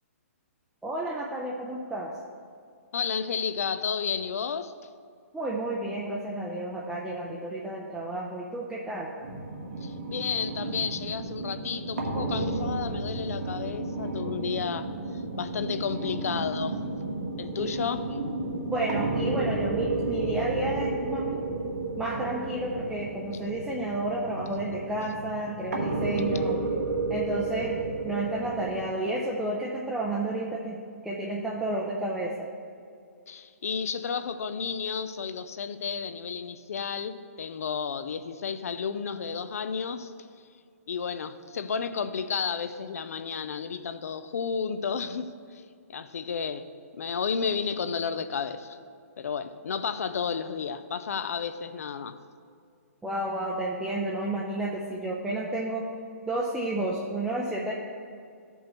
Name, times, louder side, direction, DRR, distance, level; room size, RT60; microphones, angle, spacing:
voice 1, 0.8-2.1 5.3-9.1 17.6-17.7 18.7-21.5 22.0-26.6 27.1-32.5 53.0-55.9 56.3-57.7, right 1 dB, 5° right, -3 dB, 0.4 m, -31 dB
voice 2, 2.9-4.7 9.8-14.9 15.4-16.8 17.4-18.1 33.3-40.1 40.9-45.6 45.9-46.7 46.9-48.8 49.2-52.2, left 6 dB, 75° left, 12 dB, 0.5 m, -32 dB
sound 1, 9.2-28.9, right 2 dB, 85° right, 1.2 m, -32 dB
13.0 x 5.4 x 3.0 m, 2.3 s
hypercardioid pair, 155°, 8 cm